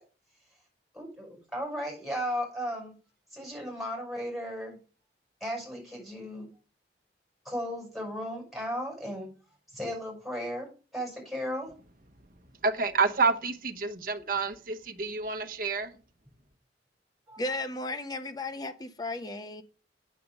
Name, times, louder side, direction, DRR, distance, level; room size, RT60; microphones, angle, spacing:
voice 1, 0.9-2.9 3.3-4.8 5.4-6.5 7.4-9.3 9.7-11.7 17.3-17.4, equal, ahead, 6.0 m, -35 dB
voice 2, 12.6-15.9, right 4 dB, 50° right, 1.1 m, -28 dB
voice 3, 17.4-19.6, left 2 dB, 20° left, 0.9 m, -35 dB
8.5 x 7.3 x 5.4 m
head